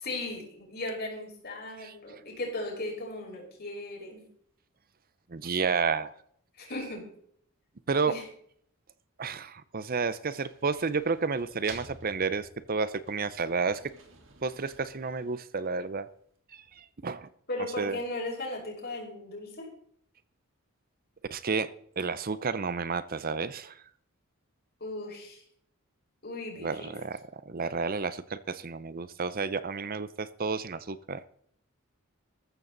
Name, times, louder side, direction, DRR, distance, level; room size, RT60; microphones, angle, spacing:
voice 1, 0.0-4.2 6.6-7.1 8.1-8.3 17.5-19.7 24.8-25.4 26.2-26.9, left 2 dB, 45° left, 0 dB, 5.5 m, -37 dB
voice 2, 5.3-6.1 7.9-8.1 9.2-13.8 14.4-16.1 16.5-17.3 17.8-18.0 21.3-23.8 26.6-27.2 27.5-31.2, right 4 dB, 40° right, 14 dB, 0.7 m, -31 dB
sound 1, 10.0-16.0, right 3 dB, 60° right, 3.3 m, -52 dB
14.5 x 14.0 x 4.0 m, 0.65 s
head